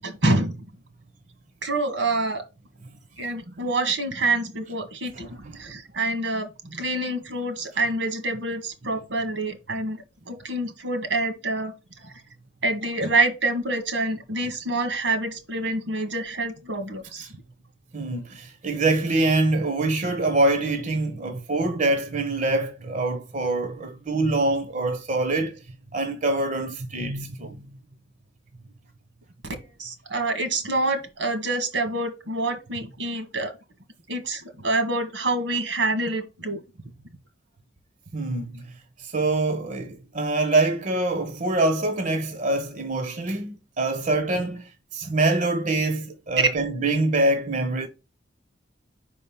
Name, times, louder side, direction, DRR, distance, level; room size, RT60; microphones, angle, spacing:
voice 1, 0.0-0.6 1.6-2.4 3.2-5.3 5.5-11.7 12.0-12.1 12.6-17.3 29.8-33.5 34.1-36.6, right 2 dB, 80° right, 1.7 m, -27 dB
voice 2, 5.3-5.7 17.2-17.3 17.9-25.6 25.9-27.7 38.1-38.7 39.0-47.9, right 2 dB, 45° right, 0.8 m, -25 dB
5.2 x 4.4 x 5.5 m
head